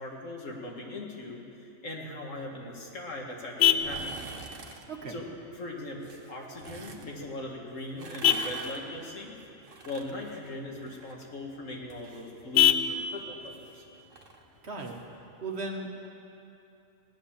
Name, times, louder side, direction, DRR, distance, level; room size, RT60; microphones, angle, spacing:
voice 1, 0.0-4.2 5.1-5.3 5.5-9.4 9.9-13.8, left 1 dB, 85° left, -1 dB, 2.3 m, -40 dB
Vehicle horn car horn honking, 2.3-15.3, left 9 dB, 60° left, 0.7 m, -32 dB
sound 1, 3.6-4.8 6.0-7.1 7.8-11.3 11.6-15.0 15.3-15.4, right 4 dB, 85° right, 1.6 m, -46 dB
voice 2, 4.9-5.2 14.6-15.0 15.4-16.1, right 2 dB, 60° right, 1 dB, 1.7 m, -37 dB
17.0 x 10.5 x 7.3 m, 2.8 s
omnidirectional pair, 1.3 m